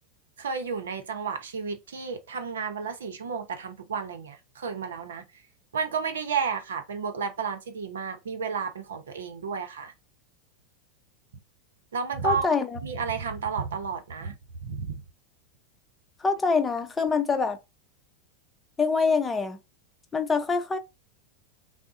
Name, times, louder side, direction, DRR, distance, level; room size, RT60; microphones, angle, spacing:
voice 1, 0.4-5.2 5.7-9.9 11.9-12.4 12.8-14.4 14.6-15.0, right 6 dB, 75° right, 0.7 m, -32 dB
voice 2, 12.2-12.8 16.2-17.6 18.8-19.6 20.1-20.8, left 4 dB, 15° left, 0.6 m, -25 dB
3.5 x 2.1 x 3.9 m
hypercardioid pair, 90°, 0 cm